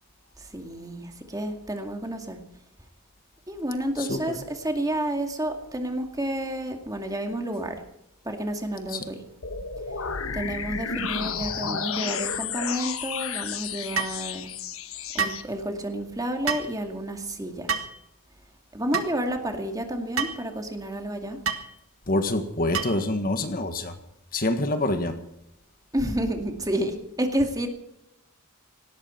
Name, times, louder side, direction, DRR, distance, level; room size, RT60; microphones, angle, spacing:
voice 1, 0.4-2.4 3.5-7.8 8.2-9.2 10.3-14.5 15.1-17.7 18.7-21.4 25.9-27.7, right 1 dB, 15° right, 4 dB, 2.2 m, -30 dB
voice 2, 4.0-4.4 8.9-9.0 22.1-23.9 24.3-25.2, left 2 dB, 40° left, 8 dB, 1.6 m, -26 dB
sound 1, 9.4-15.4, left 6 dB, 65° left, 1.4 m, -32 dB
sound 2, 14.0-14.2 15.2-15.4 16.5-16.7 17.7-18.0 18.9-19.1 20.2-20.4 21.5-21.7 22.7-23.1, right 5 dB, 65° right, 1.7 m, -28 dB
19.0 x 17.0 x 4.5 m, 0.85 s
head